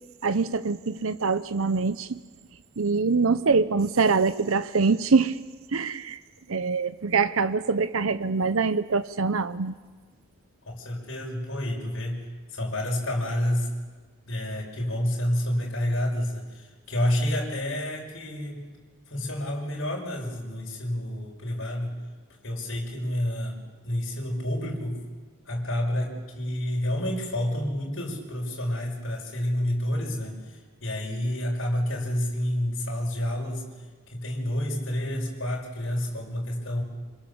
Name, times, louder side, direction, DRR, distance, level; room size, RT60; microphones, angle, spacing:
voice 1, 0.2-2.2 2.8-5.4 5.7-6.2 6.5-9.8, right 4 dB, 80° right, 12 dB, 0.8 m, -24 dB
voice 2, 10.6-13.7 14.3-18.6 19.1-22.0 22.4-25.1 25.5-33.8 34.1-36.8, left 1 dB, 65° left, -1 dB, 6.1 m, -29 dB
27.0 x 26.5 x 7.2 m, 1.4 s
head